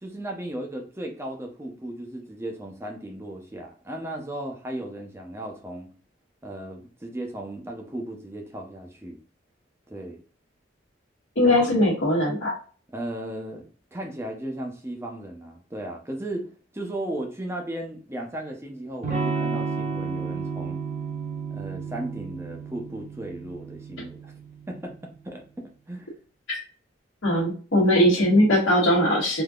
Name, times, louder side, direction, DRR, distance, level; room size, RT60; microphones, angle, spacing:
voice 1, 0.0-5.9 6.4-9.2 9.9-10.2 11.4-11.7 12.9-20.8 21.5-24.3 24.7-24.9 25.2-26.1, right 1 dB, 15° right, 2 dB, 0.6 m, -36 dB
voice 2, 11.4-12.5 26.5-26.6 27.2-29.4, left 1 dB, 80° left, -6 dB, 1.2 m, -20 dB
Electric guitar / Strum, 19.0-24.7, right 5 dB, 40° right, 0.9 m, -32 dB
3.6 x 2.7 x 2.4 m, 0.39 s
head